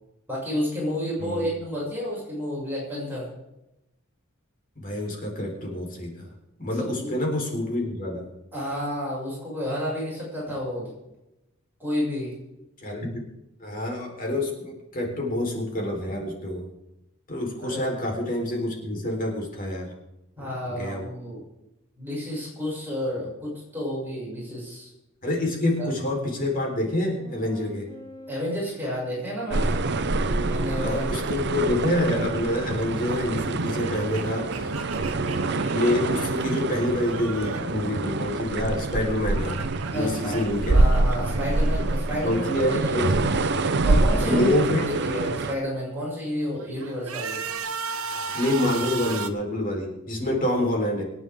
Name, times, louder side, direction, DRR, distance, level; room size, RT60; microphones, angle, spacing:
voice 1, 0.3-3.3 6.6-7.1 8.5-10.9 11.8-12.3 17.6-17.8 20.4-21.4 22.0-24.9 25.8-25.9 28.3-29.8 30.5-31.1 39.9-40.4 40.7-43.0 43.8-44.5 44.9-47.4, equal, 10° right, -6 dB, 6.4 m, -30 dB
voice 2, 4.8-6.3 6.6-8.3 12.8-13.2 13.6-16.7 17.3-19.9 20.4-21.1 25.2-27.9 30.8-34.7 35.5-39.6 39.9-40.8 42.2-43.3 44.2-44.9 48.3-51.0, left 1 dB, 40° left, 0 dB, 4.1 m, -27 dB
sound 1, 27.1-32.7 33.4-39.0, right 2 dB, 15° left, 5.2 m, -43 dB
sound 2, 29.5-45.5, right 2 dB, 55° right, 0.8 m, -26 dB
sound 3, 30.8-38.8 39.0-42.8 43.1-45.8 46.3-49.3, right 5 dB, 80° right, 1.4 m, -38 dB
26.5 x 9.1 x 3.7 m, 0.92 s
head